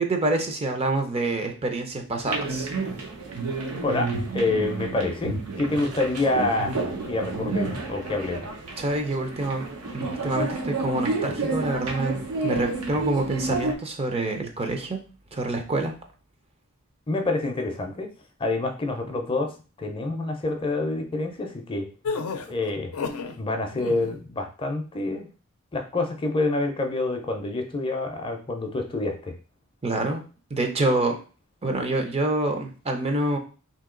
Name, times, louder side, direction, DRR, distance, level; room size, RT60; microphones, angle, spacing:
voice 1, 0.0-2.7 8.8-9.6 9.9-15.0 15.3-15.9 29.8-30.2 30.5-31.2 31.6-33.4, right 2 dB, 30° right, 4 dB, 0.5 m, -26 dB
sound 1, 2.3-13.7, right 3 dB, 90° right, 0.8 m, -30 dB
voice 2, 3.8-6.8 7.1-8.5 17.1-18.1 18.4-19.5 19.8-21.9 22.5-22.9 23.4-25.3 25.7-29.3, left 2 dB, 25° left, 3 dB, 0.5 m, -27 dB
sound 2, 22.0-23.4 23.7-24.2, left 4 dB, 85° left, 0.5 m, -31 dB
2.8 x 2.7 x 3.7 m, 0.35 s
head